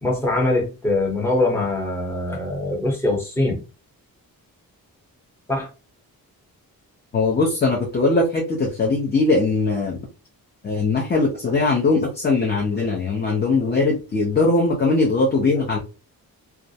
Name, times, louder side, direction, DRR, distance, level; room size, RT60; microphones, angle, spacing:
voice 1, 0.0-3.6 5.5-5.7, left 2 dB, 5° left, 0.9 m, -22 dB
voice 2, 7.1-10.0 10.6-15.8, left 3 dB, 30° left, 0.5 m, -20 dB
2.3 x 2.0 x 2.7 m
wide cardioid pair, 150°, 36 cm